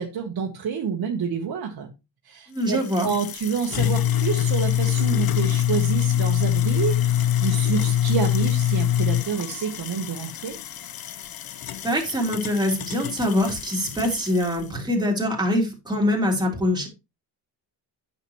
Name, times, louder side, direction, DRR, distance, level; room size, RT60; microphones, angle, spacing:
voice 1, 0.0-1.9 2.2-10.5, right 6 dB, 55° right, 2 dB, 1.4 m, -28 dB
voice 2, 2.5-3.1 11.8-16.9, left 1 dB, 10° right, -2 dB, 3.2 m, -24 dB
sound 1, 2.6-14.6, left 11 dB, 55° left, 0.8 m, -25 dB
8.9 x 6.8 x 3.1 m, 0.26 s
cardioid pair, 110°, 44 cm